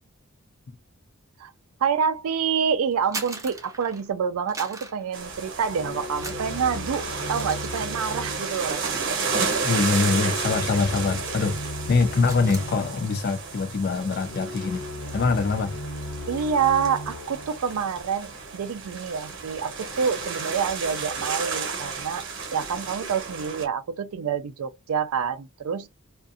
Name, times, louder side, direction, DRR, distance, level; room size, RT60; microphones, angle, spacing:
voice 1, 1.8-7.0 7.3-9.2 16.3-22.2 22.5-25.9, right 6 dB, 85° right, 0.4 m, -27 dB
sound 1, 2.9-4.1 4.5-5.7 6.1-11.1 11.3-11.6 11.9-12.7, right 3 dB, 15° right, 0.6 m, -41 dB
sound 2, 5.1-23.6, right 5 dB, 60° right, 0.9 m, -32 dB
sound 3, 5.7-18.8, left 2 dB, 85° left, 1.0 m, -38 dB
voice 2, 9.6-11.6 11.9-14.8 15.1-15.8, left 4 dB, 45° left, 0.3 m, -24 dB
2.5 x 2.4 x 2.5 m
head